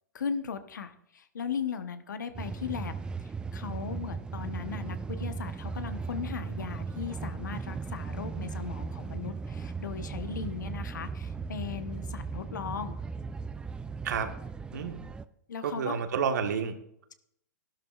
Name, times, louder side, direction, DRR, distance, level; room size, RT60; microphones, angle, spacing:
voice 1, 0.1-2.9 3.2-13.0 15.5-16.0, left 6 dB, 80° left, 10 dB, 1.0 m, -37 dB
sound 1, 2.3-15.2, right 5 dB, 10° right, 0.3 m, -37 dB
voice 2, 14.7-15.0 15.6-16.7, right 7 dB, 70° right, 6 dB, 1.4 m, -30 dB
13.5 x 12.0 x 2.4 m, 0.75 s
hypercardioid pair, 125°, 10 cm